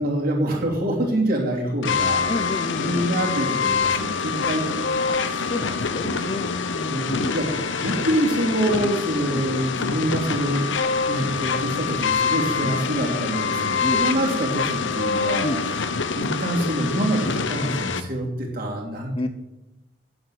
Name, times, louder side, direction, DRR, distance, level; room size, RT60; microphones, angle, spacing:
voice 1, 0.0-2.2 2.8-6.3 6.9-7.5 7.8-10.7 11.1-15.5 16.1-19.1, right 1 dB, 45° right, -1 dB, 3.1 m, -26 dB
sound 1, 1.8-18.0, left 5 dB, 70° left, 0.8 m, -25 dB
voice 2, 2.3-3.1 5.1-7.4 9.3-9.5 12.6-12.8 13.8-14.0 15.4-15.6 19.1-19.3, left 1 dB, 30° left, 10 dB, 0.7 m, -30 dB
9.4 x 7.9 x 7.8 m, 1.0 s
head